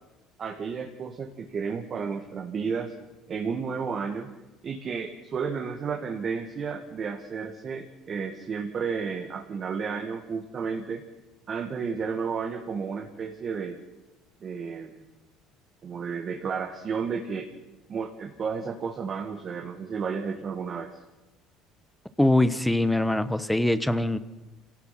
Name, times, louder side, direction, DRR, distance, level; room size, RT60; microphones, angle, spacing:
voice 1, 0.4-2.9 3.3-4.3 4.6-11.0 11.5-13.8 14.4-15.1 15.8-17.5 17.9-20.9, right 5 dB, 35° right, 2 dB, 2.0 m, -32 dB
voice 2, 22.2-24.2, left 1 dB, 5° left, 14 dB, 1.0 m, -23 dB
27.0 x 17.0 x 6.1 m, 1.1 s
cardioid pair, 125°, 0 cm